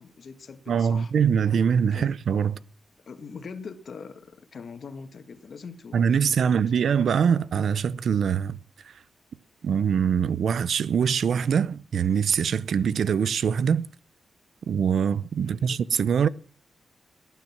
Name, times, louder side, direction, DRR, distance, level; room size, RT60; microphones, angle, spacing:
voice 1, 0.0-1.1 1.9-2.1 3.1-7.0 15.4-15.8, left 5 dB, 60° left, 1.7 m, -43 dB
voice 2, 0.7-2.6 5.9-8.6 8.8-8.9 9.6-13.9 14.7-16.3, right 7 dB, 75° right, 0.7 m, -23 dB
18.5 x 9.2 x 6.0 m
wide cardioid pair, 110°, 0 cm